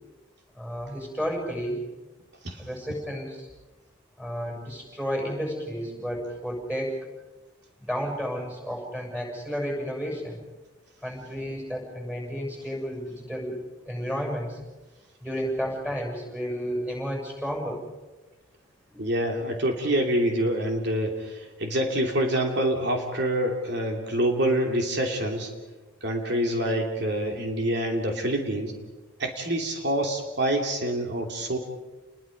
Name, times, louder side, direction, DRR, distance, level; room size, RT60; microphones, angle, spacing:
voice 1, 0.5-1.8 2.6-3.5 4.2-7.0 7.8-10.4 11.0-13.6 13.9-14.6 15.2-17.8 18.9-19.0, equal, 5° right, 1 dB, 7.1 m, -32 dB
voice 2, 19.0-25.5 26.0-28.7 29.2-31.6, right 1 dB, 55° right, 2 dB, 2.8 m, -26 dB
30.0 x 21.5 x 5.3 m, 1.1 s
head